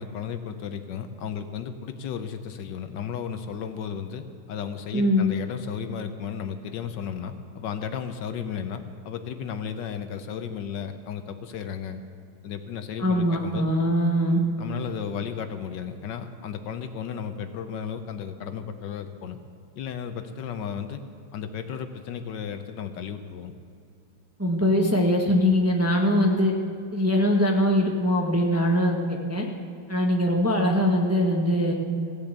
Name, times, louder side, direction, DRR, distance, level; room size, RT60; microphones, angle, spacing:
voice 1, 0.0-12.0 12.4-13.7 14.6-19.4 19.8-21.0 21.3-23.5, left 7 dB, 70° left, 9 dB, 1.3 m, -34 dB
voice 2, 4.9-5.3 13.0-14.4 24.4-26.5 26.9-29.4 29.9-31.7, left 1 dB, 15° right, 0 dB, 0.6 m, -22 dB
16.5 x 6.9 x 8.0 m, 2.6 s
omnidirectional pair, 2.2 m